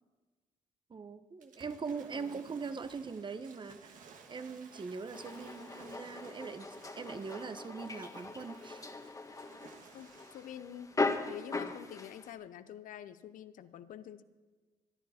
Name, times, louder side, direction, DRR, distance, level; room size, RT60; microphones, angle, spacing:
voice 1, 0.9-8.9, right 5 dB, 35° right, 0.9 m, -42 dB
Waves surf / Splash splatter, 1.4-10.7, right 6 dB, 70° right, 1.6 m, -57 dB
sound 1, 5.1-12.3, left 3 dB, 25° left, 1.4 m, -39 dB
voice 2, 9.9-11.0 11.3-14.2, left 10 dB, 75° left, 0.7 m, -47 dB
24.5 x 10.5 x 4.3 m
cardioid pair, 75°, 14 cm